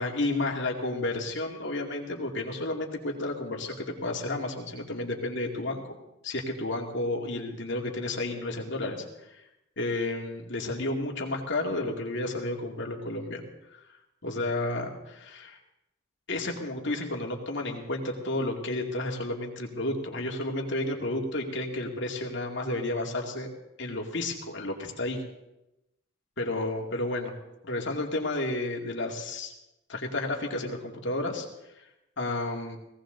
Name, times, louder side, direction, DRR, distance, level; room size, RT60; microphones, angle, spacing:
voice 1, 0.0-5.8 6.2-9.4 9.8-13.4 14.2-15.6 16.3-23.5 23.8-25.2 26.4-27.3 27.6-29.5 29.9-31.5 32.2-32.8, left 2 dB, 60° left, 1 dB, 2.4 m, -31 dB
18.5 x 16.5 x 3.9 m, 0.92 s
head